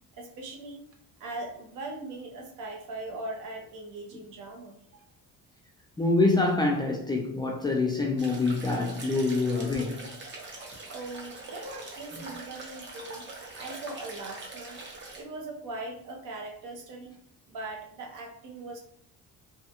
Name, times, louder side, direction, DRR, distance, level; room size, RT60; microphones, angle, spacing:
voice 1, 0.2-0.8 1.2-5.0 10.8-14.8 15.1-17.2 17.5-18.8, right 2 dB, 65° right, 0.9 m, -40 dB
voice 2, 6.0-10.1, left 3 dB, 15° left, 0.3 m, -26 dB
sound 1, 8.2-15.2, right 2 dB, 35° right, 0.8 m, -43 dB
2.8 x 2.3 x 2.8 m
cardioid pair, 115°, 33 cm